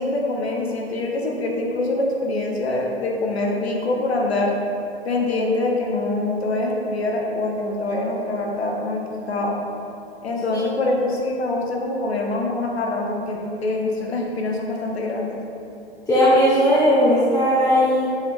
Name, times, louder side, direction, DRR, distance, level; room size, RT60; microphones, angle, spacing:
voice 1, 0.0-4.6 5.0-9.6 10.2-15.4, left 2 dB, 70° left, 0 dB, 1.5 m, -24 dB
voice 2, 16.1-18.1, equal, 10° left, -9 dB, 1.1 m, -17 dB
7.1 x 7.0 x 3.4 m, 2.9 s
figure-of-eight pair, 110°, 33 cm